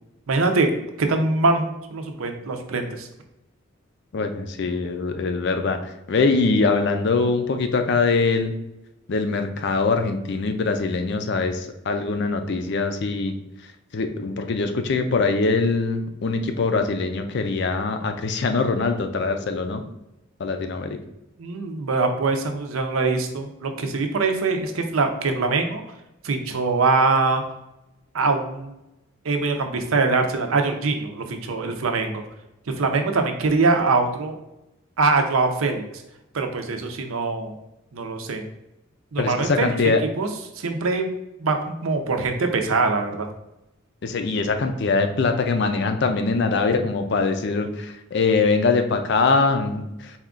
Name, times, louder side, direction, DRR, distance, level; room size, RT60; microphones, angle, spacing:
voice 1, 0.3-0.7 1.0-3.1 21.4-25.8 26.2-27.4 28.1-28.8 29.2-32.2 32.8-34.4 35.0-35.8 36.3-37.5 37.9-38.4 39.1-39.8 40.2-40.3 40.6-41.1 41.4-43.3, right 3 dB, 80° right, 5 dB, 0.6 m, -23 dB
voice 2, 4.1-5.8 6.1-8.5 9.1-13.4 13.9-19.8 20.4-20.9 39.2-40.0 44.0-50.1, left 4 dB, 55° left, 7 dB, 0.4 m, -23 dB
4.3 x 2.4 x 3.7 m, 0.92 s
head